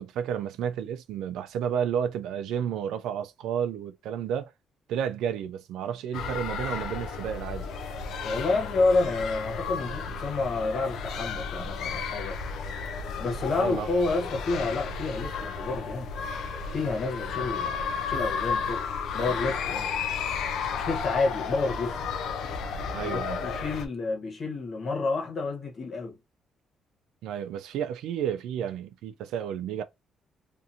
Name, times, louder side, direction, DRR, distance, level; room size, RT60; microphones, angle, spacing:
voice 1, 0.0-4.5 4.9-7.7 13.6-13.9 22.9-23.4 27.2-29.8, right 8 dB, 90° right, 0.4 m, -31 dB
sound 1, 6.1-23.9, left 5 dB, 80° left, 0.4 m, -33 dB
voice 2, 8.2-12.4 13.2-16.1 16.7-18.8 19.1-19.9 20.7-22.0 23.0-26.2, left 3 dB, 50° left, 1.1 m, -29 dB
2.6 x 2.5 x 2.7 m
cardioid pair, 90°, 0 cm